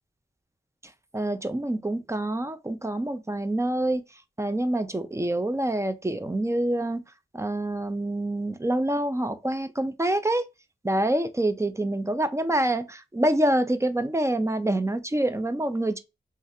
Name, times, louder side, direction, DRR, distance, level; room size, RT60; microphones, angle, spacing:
voice 1, 1.1-4.0 4.4-7.0 7.3-10.4 10.8-16.0, right 1 dB, 15° right, 0.4 m, -26 dB
3.2 x 2.4 x 2.8 m
wide cardioid pair, 100°, 21 cm